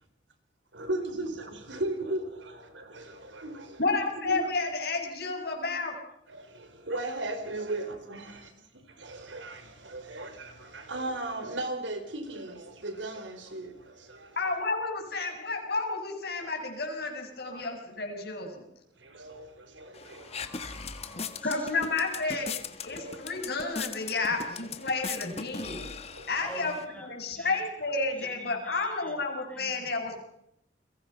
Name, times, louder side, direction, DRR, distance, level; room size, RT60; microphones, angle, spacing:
voice 1, 0.7-3.8 4.1-4.5 6.3-6.4 6.9-8.4 9.0-13.7 14.2-14.3 17.5-17.6 19.1-19.5 19.8-20.2 23.0-23.2 24.9-25.0 26.2-26.3 26.7-26.8, right 2 dB, 90° right, 4.5 m, -36 dB
voice 2, 3.8-6.0 14.3-18.6 21.4-25.9 26.3-26.7 27.0-30.2, left 3 dB, 55° left, 6.9 m, -31 dB
sound 1, 19.9-26.8, left 5 dB, 35° left, 1.6 m, -39 dB
voice 3, 20.1-21.9 26.4-27.6 28.2-29.2 29.5-29.9, equal, 10° left, 6.1 m, -48 dB
30.0 x 23.0 x 5.7 m
head